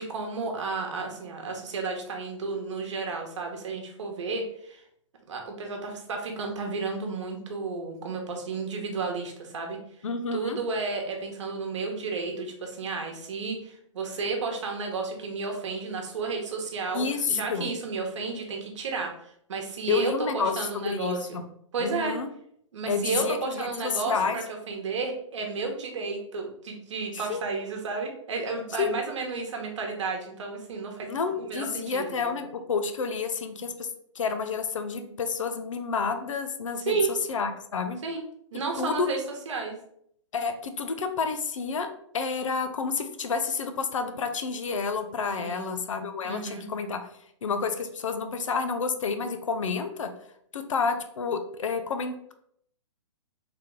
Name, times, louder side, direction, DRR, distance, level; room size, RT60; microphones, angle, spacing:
voice 1, 0.0-4.8 5.3-9.8 10.3-21.4 21.7-22.2 22.7-32.4 36.8-37.1 38.0-38.2 38.5-39.2 39.5-39.8 45.4-45.8 46.2-46.6, right 4 dB, 70° right, 2 dB, 1.1 m, -32 dB
voice 2, 10.0-10.6 16.9-17.7 19.9-21.4 21.8-22.3 22.9-23.7 24.1-24.4 27.1-27.4 28.8-28.9 31.1-33.9 34.2-38.0 38.8-39.1 40.3-41.9 42.1-47.0 47.4-50.1 50.5-52.3, left 5 dB, 80° left, 8 dB, 0.6 m, -29 dB
3.4 x 2.9 x 3.6 m, 0.69 s
hypercardioid pair, 140°, 16 cm